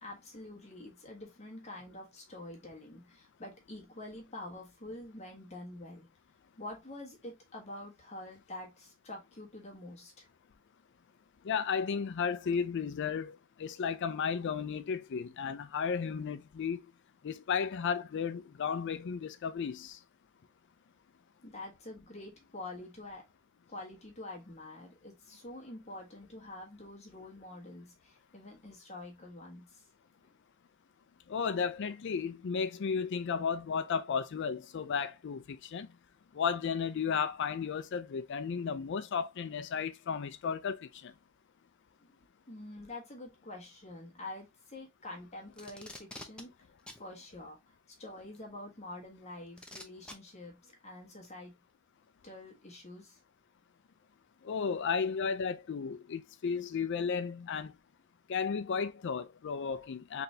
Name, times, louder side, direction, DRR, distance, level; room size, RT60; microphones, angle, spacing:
voice 1, 0.0-6.1 6.6-10.3 21.4-23.2 23.7-29.8 42.0-42.2 42.5-46.5 47.0-47.7 48.0-51.5 52.2-53.2, left 2 dB, 30° left, 1.3 m, -47 dB
voice 2, 11.4-16.8 17.2-20.0 31.3-35.9 36.3-41.1 54.4-57.7 58.3-60.2, left 6 dB, 60° left, 0.4 m, -34 dB
Packing tape duct tape, 45.6-46.4 46.9-47.0 48.3-48.4 49.6-50.1 51.2-51.3, left 1 dB, 5° left, 0.7 m, -46 dB
4.2 x 3.3 x 2.6 m
head